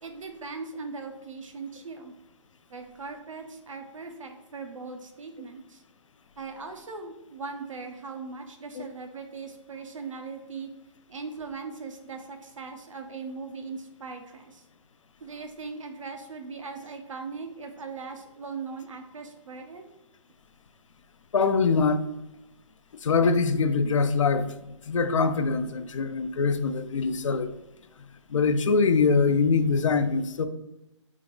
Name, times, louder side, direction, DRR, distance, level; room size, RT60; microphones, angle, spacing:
voice 1, 0.0-2.1 2.7-5.8 6.4-10.7 11.1-14.6 15.2-19.8, right 4 dB, 80° right, 5 dB, 0.8 m, -39 dB
voice 2, 21.3-22.0 23.0-24.5 24.9-27.5 28.3-30.5, left 4 dB, 75° left, 10 dB, 0.5 m, -23 dB
3.6 x 2.9 x 3.8 m, 0.94 s
hypercardioid pair, 140°, 16 cm